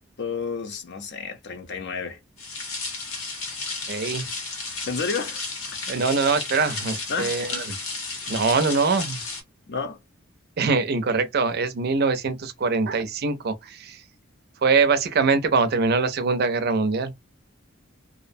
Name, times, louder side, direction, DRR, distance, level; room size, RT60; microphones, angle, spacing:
voice 1, 0.2-2.2 4.9-5.8 7.1-7.4 9.7-10.0, left 5 dB, 55° left, 0.5 m, -31 dB
sound 1, 2.4-9.4, left 3 dB, 85° left, 1.1 m, -33 dB
voice 2, 3.9-4.3 5.9-7.8 8.3-9.2 10.6-14.0 14.6-17.1, right 4 dB, 50° right, 0.4 m, -23 dB
2.6 x 2.0 x 2.5 m
head